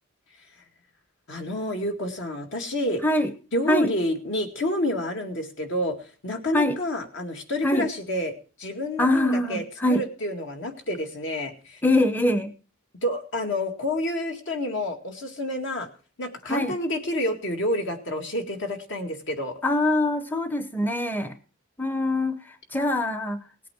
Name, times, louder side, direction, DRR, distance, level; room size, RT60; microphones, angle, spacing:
voice 1, 1.3-3.0 3.5-9.6 9.9-11.8 13.0-15.9 16.2-19.6, left 1 dB, 65° left, 4 dB, 2.1 m, -29 dB
voice 2, 9.0-10.0 11.8-12.5 16.4-16.8 19.6-21.4 21.8-23.4, left 1 dB, 10° left, 10 dB, 0.8 m, -23 dB
18.0 x 8.5 x 4.5 m, 0.36 s
head